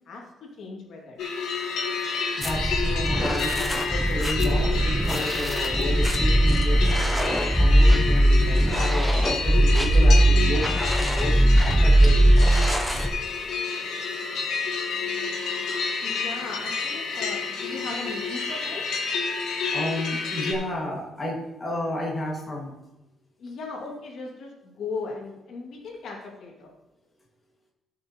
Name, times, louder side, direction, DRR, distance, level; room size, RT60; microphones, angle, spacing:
voice 1, 0.1-1.2 16.0-18.8 23.4-26.7, left 4 dB, 55° left, -1 dB, 2.2 m, -37 dB
sound 1, 1.2-20.5, left 4 dB, 80° left, 2.3 m, -29 dB
voice 2, 2.4-12.2 19.7-22.7, left 1 dB, 15° left, -3 dB, 1.8 m, -32 dB
sound 2, 2.4-13.1, right 1 dB, 5° right, 0.6 m, -20 dB
15.5 x 6.5 x 2.9 m, 0.95 s
cardioid pair, 180°, 0 cm